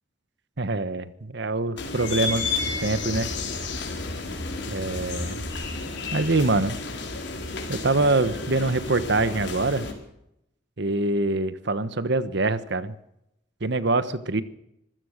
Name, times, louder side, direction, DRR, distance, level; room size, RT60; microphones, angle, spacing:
voice 1, 0.6-3.3 4.7-5.4 6.1-6.8 7.7-9.9 10.8-12.9 13.6-14.4, right 2 dB, 65° right, 13 dB, 1.3 m, -25 dB
sound 1, 1.8-9.9, left 3 dB, 65° left, 4.6 m, -31 dB
26.0 x 15.5 x 6.6 m, 0.81 s
head